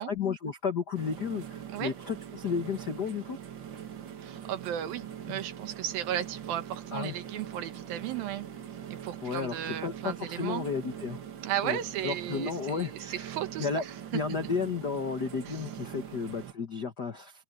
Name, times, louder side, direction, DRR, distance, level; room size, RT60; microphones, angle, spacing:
voice 1, 0.0-3.4 5.3-5.4 6.9-7.2 9.2-11.2 11.6-13.8 14.1-17.4, left 5 dB, 65° left, 0.9 m, -33 dB
sound 1, 0.9-16.5, right 9 dB, 55° right, 1.3 m, -43 dB
voice 2, 4.2-8.5 9.0-10.7 11.4-13.9 15.5-15.6, right 11 dB, 90° right, 3.1 m, -35 dB
open air
omnidirectional pair, 4.0 m